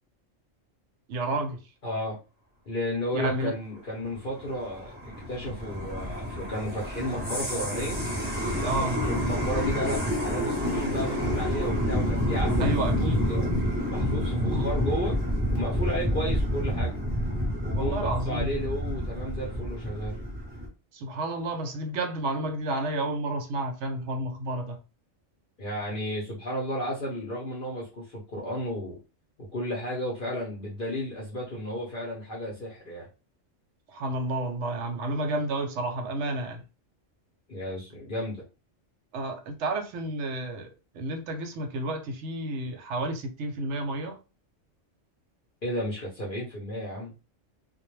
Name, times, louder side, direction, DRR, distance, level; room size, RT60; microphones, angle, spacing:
voice 1, 1.1-1.6 3.1-3.5 8.6-9.0 12.6-13.3 17.7-18.5 20.9-24.8 33.9-36.6 39.1-40.7 40.9-44.2, right 2 dB, 70° right, 0.8 m, -31 dB
voice 2, 1.8-2.2 2.7-8.0 8.6-13.5 13.9-15.2 15.5-16.9 17.6-20.2 25.6-29.0 29.5-33.1 37.5-38.4 45.6-47.1, equal, 50° left, 0.7 m, -33 dB
sound 1, 4.1-20.7, equal, 15° right, 0.4 m, -28 dB
2.2 x 2.1 x 3.0 m
omnidirectional pair, 1.3 m